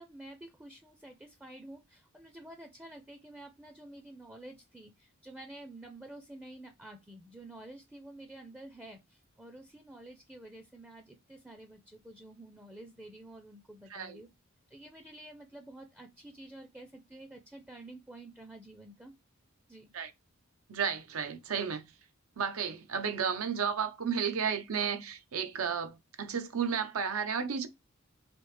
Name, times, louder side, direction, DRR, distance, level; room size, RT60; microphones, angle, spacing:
voice 1, 0.0-14.3 14.7-19.1 19.7-19.9, right 1 dB, 5° right, 0.4 m, -50 dB
voice 2, 13.9-14.2 19.9-20.1 20.7-21.8 22.4-27.7, right 7 dB, 90° right, 0.6 m, -33 dB
3.4 x 2.8 x 3.1 m
head